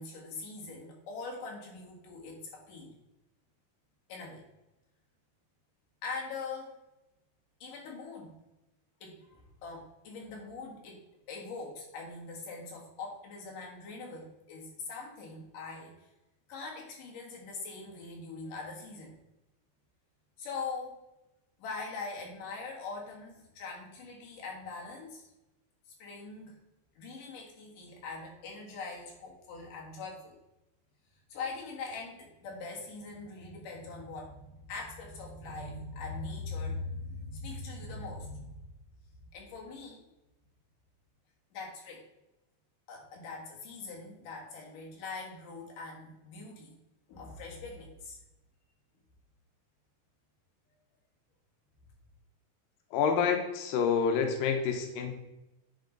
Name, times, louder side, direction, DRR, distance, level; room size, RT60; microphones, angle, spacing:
voice 1, 0.0-2.9 4.1-4.4 6.0-6.7 7.6-8.3 9.0-11.0 11.3-15.9 16.5-19.1 20.4-21.0 21.6-25.3 26.0-26.6 27.0-30.4 31.3-38.6 39.3-40.0 41.5-42.0 42.9-46.7 47.1-48.2, left 3 dB, 60° left, -2 dB, 2.8 m, -42 dB
voice 2, 52.9-55.1, left 6 dB, 90° left, 4 dB, 2.0 m, -28 dB
10.5 x 3.7 x 3.9 m, 0.94 s
omnidirectional pair, 5.0 m